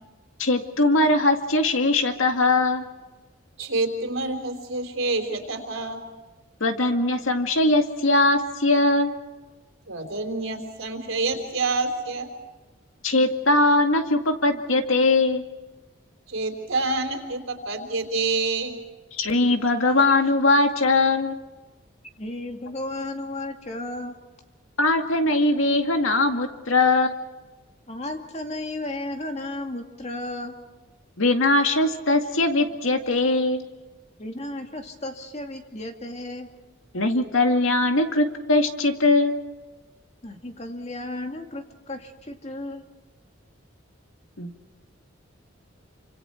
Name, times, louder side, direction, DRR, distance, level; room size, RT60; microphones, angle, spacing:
voice 1, 0.4-2.9 6.6-9.2 13.0-15.4 19.1-21.4 24.8-27.2 31.2-33.6 36.9-39.4 44.4-44.5, left 2 dB, 85° left, 5 dB, 2.2 m, -21 dB
voice 2, 3.6-6.0 9.9-12.3 16.3-18.7, right 3 dB, 90° right, 5 dB, 4.0 m, -27 dB
voice 3, 22.2-24.1 27.9-30.6 34.2-36.5 40.2-42.8, left 1 dB, 35° left, 4 dB, 2.3 m, -34 dB
28.0 x 26.0 x 4.5 m, 1.2 s
head